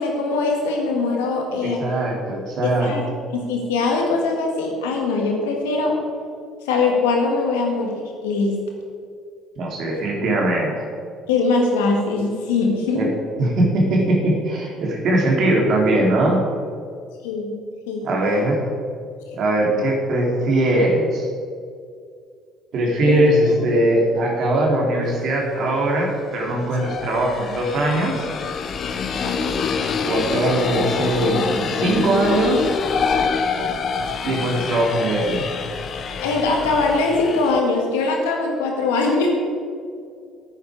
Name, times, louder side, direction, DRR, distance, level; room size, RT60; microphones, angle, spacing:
voice 1, 0.0-1.8 2.6-3.1 3.3-6.0 6.6-8.6 11.3-13.1 17.2-18.1 19.7-19.8 23.0-23.2 29.2-29.6 36.2-39.3, left 3 dB, 85° left, 1 dB, 1.9 m, -22 dB
voice 2, 1.6-2.9 9.6-10.9 12.9-13.1 13.4-16.4 18.0-18.7 19.3-21.3 22.7-28.3 30.0-32.8 34.2-35.5, right 1 dB, 60° right, -1 dB, 2.9 m, -20 dB
sound 1, 25.2-25.3 26.3-37.6, left 5 dB, 50° left, 0.9 m, -26 dB
10.0 x 9.6 x 4.9 m, 2.2 s
hypercardioid pair, 65°, 0 cm